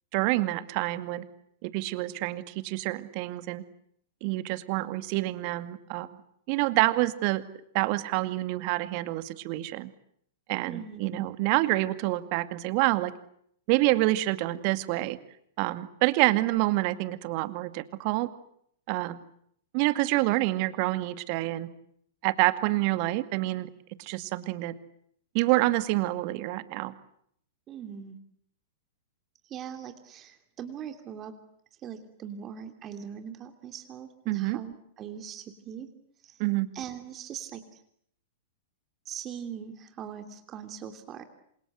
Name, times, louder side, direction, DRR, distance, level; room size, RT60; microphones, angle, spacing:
voice 1, 0.1-1.2 1.6-3.6 4.2-6.2 6.5-7.4 7.7-9.9 10.5-13.1 13.7-15.2 15.6-18.3 18.9-19.2 19.7-21.7 22.2-23.7 24.0-24.7 25.3-26.9 34.3-34.6 36.4-36.7, right 19 dB, 45° right, 12 dB, 2.1 m, -27 dB
voice 2, 10.7-11.3 27.7-28.2 29.4-31.3 31.8-35.9 36.2-36.4 36.7-37.8 39.0-41.2, right 8 dB, 30° right, 6 dB, 3.0 m, -41 dB
27.5 x 27.5 x 7.9 m, 0.68 s
figure-of-eight pair, 105°, 0 cm